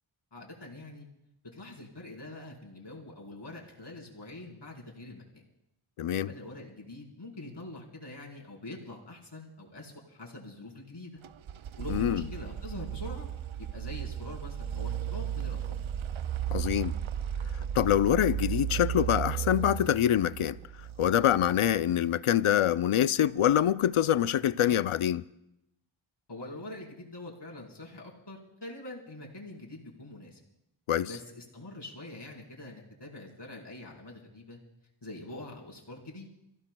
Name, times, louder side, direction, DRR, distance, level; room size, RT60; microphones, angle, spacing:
voice 1, 0.3-1.1 1.5-5.4 6.2-11.2 11.8-13.3 13.6-15.8 26.3-30.4 31.0-34.6 35.0-36.3, left 2 dB, 55° left, 4.1 m, -44 dB
voice 2, 6.0-6.3 11.9-12.2 16.5-17.0 17.7-20.6 21.0-25.2 30.9-31.1, left 11 dB, 85° left, 0.6 m, -25 dB
sound 1, 11.2-22.0, right 10 dB, 75° right, 0.6 m, -35 dB
30.0 x 16.0 x 2.3 m
wide cardioid pair, 45°, 49 cm